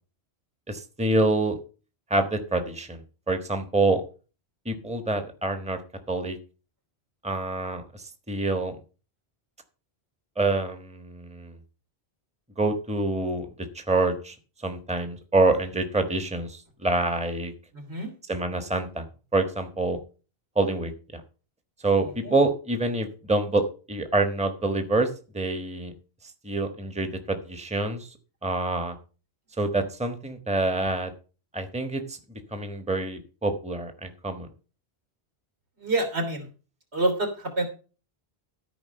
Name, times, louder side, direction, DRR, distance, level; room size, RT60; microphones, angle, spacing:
voice 1, 0.7-1.6 2.1-4.0 4.6-5.8 6.1-6.4 7.2-8.7 10.4-11.5 12.6-13.5 13.7-14.3 14.6-17.5 18.3-19.0 19.3-20.0 20.5-21.2 21.8-25.1 25.3-25.9 26.4-28.1 28.4-28.9 29.6-31.1 31.5-34.5, right 2 dB, 5° right, 7 dB, 1.4 m, -26 dB
voice 2, 17.7-18.1 22.2-22.3 35.8-36.5 36.9-37.7, right 2 dB, 80° right, 2 dB, 3.5 m, -27 dB
13.5 x 5.1 x 6.5 m, 0.35 s
omnidirectional pair, 1.1 m